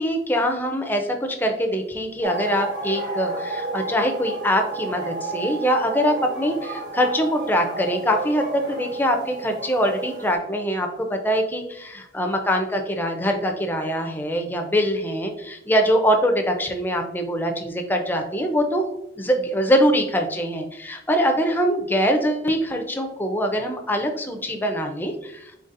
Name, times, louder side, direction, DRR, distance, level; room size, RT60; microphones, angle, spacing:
voice 1, 0.0-18.9 19.2-25.5, equal, 10° left, 4 dB, 0.4 m, -23 dB
sound 1, 2.2-10.4, right 3 dB, 85° right, 1.2 m, -32 dB
4.0 x 4.0 x 2.5 m, 0.83 s
head